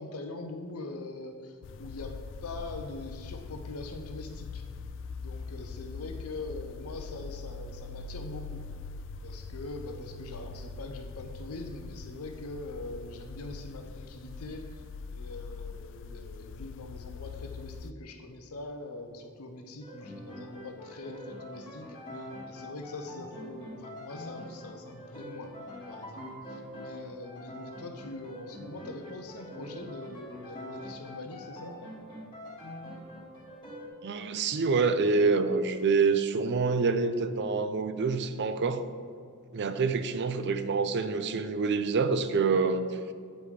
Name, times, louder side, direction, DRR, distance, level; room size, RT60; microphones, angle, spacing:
voice 1, 0.0-4.7 5.2-8.7 9.2-14.8 15.1-25.5 25.9-31.8, left 2 dB, 85° left, 5 dB, 0.7 m, -43 dB
sound 1, 1.6-17.9, left 4 dB, 60° left, 0.3 m, -42 dB
sound 2, 19.8-33.9, left 1 dB, 25° left, 1.4 m, -44 dB
voice 2, 34.0-38.8 39.5-42.9, right 4 dB, 55° right, 10 dB, 0.5 m, -26 dB
8.8 x 5.2 x 4.8 m, 2.2 s
head